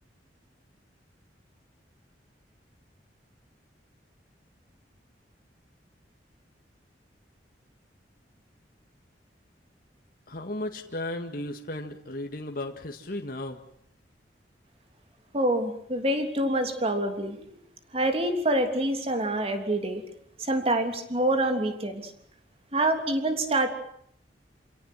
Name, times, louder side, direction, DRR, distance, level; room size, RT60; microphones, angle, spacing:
voice 1, 10.3-13.6, left 1 dB, 55° left, 3 dB, 2.0 m, -35 dB
voice 2, 15.3-17.6 17.9-20.0 20.5-22.1 22.7-23.7, right 1 dB, 35° right, 6 dB, 3.3 m, -26 dB
28.5 x 17.5 x 9.2 m, 0.69 s
head